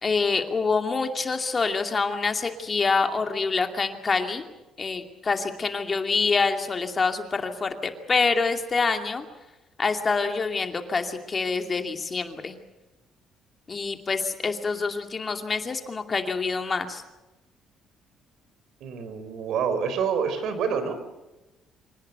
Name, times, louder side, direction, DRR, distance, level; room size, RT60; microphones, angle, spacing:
voice 1, 0.0-4.4 4.8-9.2 9.8-12.6 13.7-17.0, left 4 dB, 30° left, 5 dB, 2.5 m, -26 dB
voice 2, 18.8-21.0, right 6 dB, 70° right, 10 dB, 4.5 m, -27 dB
26.0 x 18.5 x 8.1 m, 0.98 s
cardioid pair, 125°, 0 cm